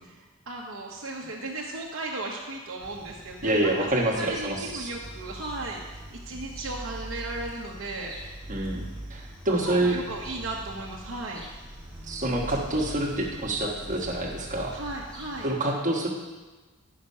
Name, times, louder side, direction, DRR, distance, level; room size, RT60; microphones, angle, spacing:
voice 1, 0.0-8.2 9.7-11.4 14.7-15.5, right 2 dB, 65° right, -3 dB, 1.0 m, -36 dB
sound 1, 2.8-15.4, right 1 dB, 5° left, 1.7 m, -42 dB
voice 2, 3.4-4.9 8.5-8.8 9.1-10.0 12.0-14.7 15.4-16.1, right 1 dB, 35° right, -1 dB, 1.3 m, -27 dB
9.9 x 5.9 x 5.6 m, 1.3 s
head